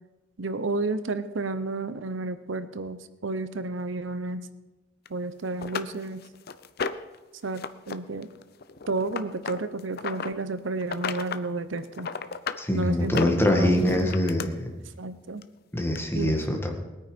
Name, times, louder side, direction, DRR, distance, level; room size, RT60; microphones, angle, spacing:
voice 1, 0.4-4.5 5.1-6.2 7.4-8.3 8.9-12.1 12.7-13.8 15.0-15.4 16.1-16.3, right 3 dB, 85° right, 13 dB, 0.8 m, -31 dB
sound 1, 5.1-5.2 5.6-7.2 7.5-8.0 8.2-10.3 10.8-11.4 11.8-12.6 13.0-14.5 15.4-15.5 16.0-16.1, left 5 dB, 55° left, 0.7 m, -33 dB
voice 2, 12.6-14.7 15.7-16.7, left 1 dB, 15° left, 2 dB, 2.0 m, -24 dB
20.0 x 9.4 x 5.2 m, 1.1 s
head